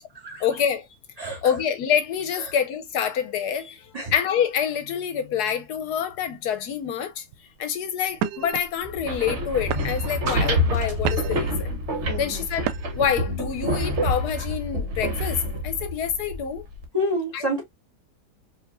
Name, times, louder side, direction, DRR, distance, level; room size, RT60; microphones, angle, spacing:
voice 1, 0.4-0.9 1.4-7.2 7.6-11.8 12.2-12.7 13.0-16.6 17.3-17.4, left 8 dB, 75° left, 1.2 m, -26 dB
sound 1, 7.3-7.6 8.2-8.6 9.3-9.4 9.7-10.2 10.7-11.5 12.6-13.1, right 11 dB, 85° right, 1.2 m, -31 dB
sound 2, 8.8-16.9, equal, 50° right, 1.2 m, -27 dB
voice 2, 12.1-12.4 16.9-17.6, equal, 25° right, 2.1 m, -28 dB
4.8 x 2.9 x 2.5 m
omnidirectional pair, 1.7 m